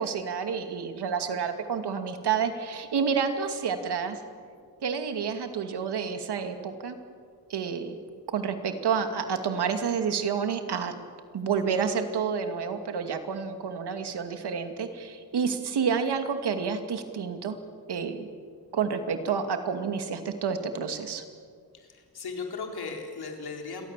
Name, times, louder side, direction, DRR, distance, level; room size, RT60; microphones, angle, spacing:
voice 1, 0.0-4.2 4.8-6.9 7.5-8.0 8.3-10.9 11.3-17.6 17.9-18.3 18.7-21.2, right 6 dB, 75° right, 7 dB, 2.5 m, -29 dB
voice 2, 21.7-23.9, left 4 dB, 70° left, 2 dB, 4.3 m, -37 dB
29.0 x 23.5 x 7.5 m, 2.1 s
wide cardioid pair, 135°, 40 cm